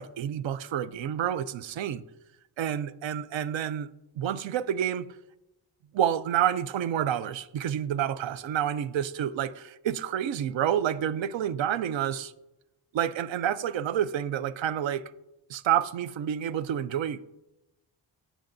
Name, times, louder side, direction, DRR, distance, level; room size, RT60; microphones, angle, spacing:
voice 1, 0.0-2.0 2.6-3.9 4.2-5.1 5.9-12.3 12.9-15.0 15.5-17.3, right 10 dB, 70° right, 0.5 m, -29 dB
14.0 x 6.1 x 2.6 m
cardioid pair, 75°, 47 cm